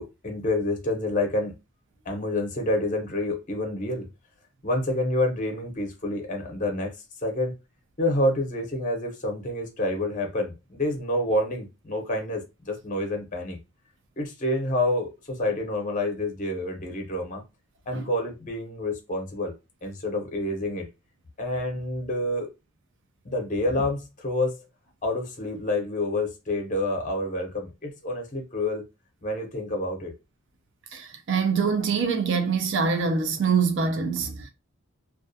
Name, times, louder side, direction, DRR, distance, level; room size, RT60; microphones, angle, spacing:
voice 1, 0.0-1.5 2.1-4.1 4.6-6.9 7.2-7.5 8.0-13.6 14.2-17.4 17.9-19.5 19.8-20.9 21.4-22.5 23.2-24.6 25.0-28.8 29.2-30.1, left 1 dB, 35° left, 0.7 m, -28 dB
voice 2, 30.9-34.5, right 5 dB, 55° right, 0.4 m, -24 dB
2.3 x 2.2 x 2.6 m
head